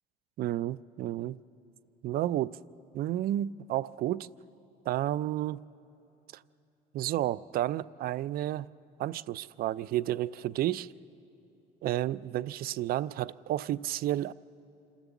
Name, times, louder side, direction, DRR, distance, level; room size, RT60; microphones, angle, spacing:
voice 1, 0.4-1.4 2.0-2.6 2.9-4.3 4.9-5.6 6.9-8.7 9.0-10.9 11.8-14.3, right 13 dB, 60° right, 20 dB, 0.4 m, -31 dB
27.0 x 14.5 x 7.1 m, 3.0 s
cardioid pair, 110°, 17 cm